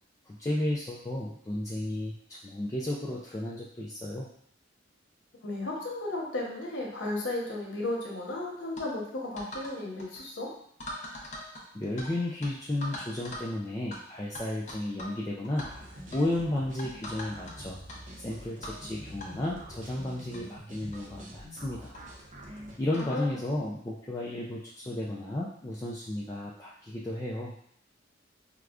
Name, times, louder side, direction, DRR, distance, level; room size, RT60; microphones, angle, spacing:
voice 1, 0.3-4.3 11.7-15.7 16.1-17.8 18.2-22.0 22.4-27.5, left 1 dB, 15° left, -5 dB, 0.3 m, -33 dB
voice 2, 5.4-10.5 22.9-23.3, left 2 dB, 75° left, -3 dB, 1.0 m, -34 dB
sound 1, 8.8-8.9 9.4-9.7 10.0-10.2 10.8-12.1 12.4-12.5 12.8-13.5 13.9-14.0 14.3-15.2 15.4-15.7 16.1-16.3 16.8-17.5 17.9-18.0 18.6-18.8 19.2-19.3 20.0-20.1 20.3-20.4 20.9-21.1 21.9-22.0 22.9-23.1, left 1 dB, 40° left, 0.7 m, -41 dB
sound 2, 15.5-22.8, equal, 40° right, 0.6 m, -46 dB
4.7 x 2.2 x 2.4 m, 0.68 s
head